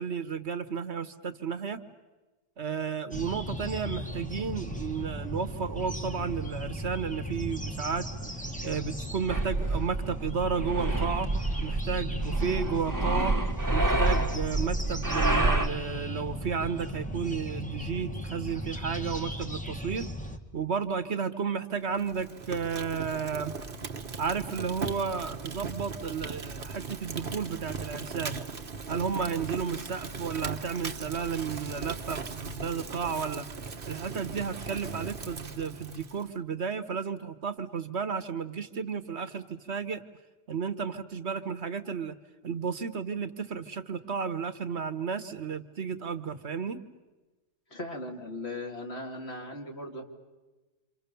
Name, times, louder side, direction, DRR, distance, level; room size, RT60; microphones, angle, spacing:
voice 1, 0.0-1.8 2.6-8.1 8.6-11.3 11.6-13.4 13.7-20.1 20.5-23.5 24.2-28.4 28.9-33.5 33.9-40.0 40.5-42.1 42.4-46.8, right 6 dB, 65° right, 11 dB, 1.5 m, -33 dB
sound 1, 3.1-20.4, equal, 5° left, 1.6 m, -37 dB
sound 2, 9.3-15.7, right 2 dB, 15° right, 1.6 m, -28 dB
Fire, 21.9-36.3, right 4 dB, 50° right, 1.4 m, -38 dB
voice 2, 47.7-50.0, left 1 dB, 60° left, 1 dB, 3.2 m, -38 dB
28.0 x 27.5 x 7.0 m, 1.2 s
omnidirectional pair, 1.2 m